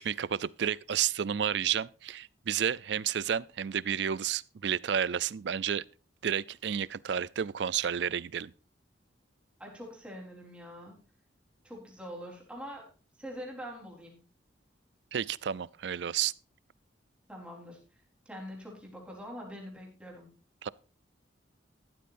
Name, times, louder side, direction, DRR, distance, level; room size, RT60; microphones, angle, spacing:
voice 1, 0.0-5.8 6.2-8.5 15.1-16.3 20.6-20.7, right 8 dB, 65° right, 0.4 m, -31 dB
voice 2, 9.6-11.0 11.6-12.9 13.2-14.2 17.3-17.8 18.3-20.3, equal, 5° right, 3.9 m, -44 dB
14.5 x 12.5 x 2.6 m
head